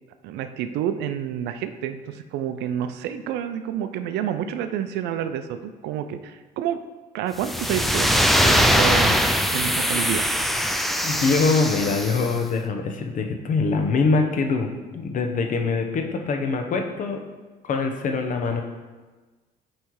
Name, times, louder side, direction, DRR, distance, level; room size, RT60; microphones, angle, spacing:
voice 1, 0.2-6.8 7.1-9.2 9.5-10.3, right 9 dB, 85° right, 10 dB, 0.5 m, -29 dB
sound 1, 7.4-12.3, equal, ahead, 0.4 m, -21 dB
voice 2, 11.0-17.2 17.6-18.6, left 4 dB, 50° left, 4 dB, 0.9 m, -23 dB
8.3 x 3.2 x 4.7 m, 1.3 s
cardioid pair, 110°, 17 cm